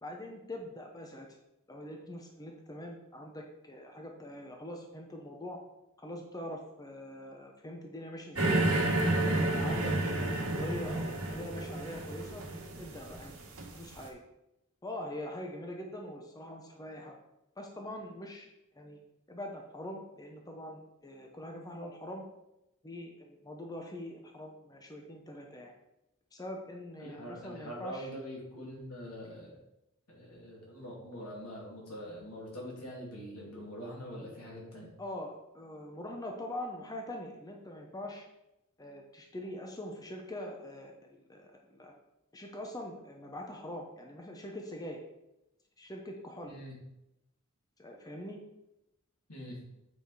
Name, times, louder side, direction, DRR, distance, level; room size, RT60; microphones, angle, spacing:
voice 1, 0.0-1.4 1.7-5.6 6.0-8.6 9.1-12.4 12.8-13.4 13.7-14.2 14.8-17.1 17.6-18.5 18.7-19.0 19.3-22.2 22.8-25.7 26.3-28.1 35.0-38.3 38.8-41.9 42.3-45.0 45.8-46.5 47.8-48.4, left 1 dB, 15° left, 2 dB, 0.8 m, -43 dB
sound 1, 8.4-14.0, right 2 dB, 75° right, 1.8 m, -30 dB
voice 2, 27.0-29.6 30.1-34.9 46.5-46.8 49.3-49.6, equal, 85° left, -3 dB, 2.9 m, -44 dB
8.0 x 5.0 x 4.9 m, 0.89 s
head